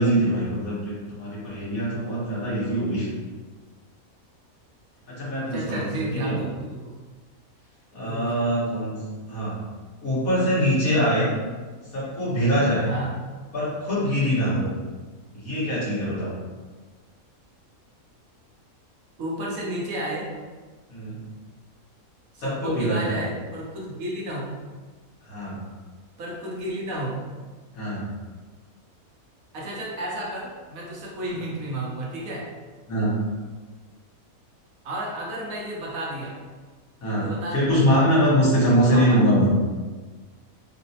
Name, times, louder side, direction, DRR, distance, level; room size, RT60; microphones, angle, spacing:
voice 1, 0.0-3.1 5.1-6.4 7.9-9.0 9.2-9.6 10.0-11.3 11.9-12.9 13.5-14.7 15.3-16.3 20.9-21.2 22.4-23.2 25.3-25.6 27.7-28.0 32.9-33.2 37.0-39.5, equal, 75° left, -8 dB, 1.6 m, -23 dB
voice 2, 5.5-6.9 8.1-8.3 12.8-13.1 19.2-20.3 22.3-24.6 26.2-27.2 29.5-32.5 34.8-36.3 37.2-37.6 38.4-39.2, right 1 dB, 75° right, -4 dB, 1.2 m, -32 dB
4.0 x 2.0 x 2.7 m, 1.4 s
omnidirectional pair, 1.5 m